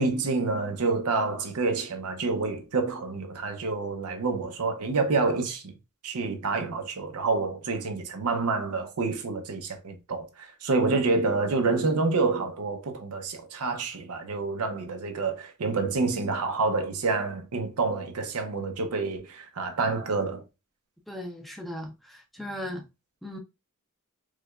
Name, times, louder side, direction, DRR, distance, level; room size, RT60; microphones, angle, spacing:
voice 1, 0.0-5.8 6.0-20.4, right 3 dB, 85° right, 0.7 m, -28 dB
voice 2, 21.1-22.9 23.2-23.4, left 1 dB, ahead, 0.4 m, -37 dB
4.7 x 2.2 x 2.3 m
head